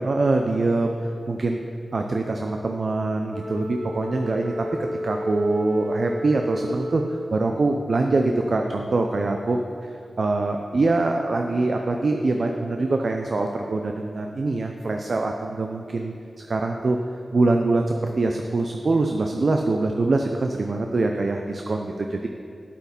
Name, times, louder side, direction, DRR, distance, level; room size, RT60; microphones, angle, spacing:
voice 1, 0.0-1.6 1.9-4.7 5.0-9.9 10.2-17.0 17.3-22.3, right 2 dB, 60° right, 3 dB, 0.6 m, -24 dB
Wind instrument woodwind instrument, 3.3-7.7, left 1 dB, 20° right, 1.1 m, -32 dB
8.4 x 8.3 x 5.3 m, 2.5 s
cardioid pair, 60°, 0 cm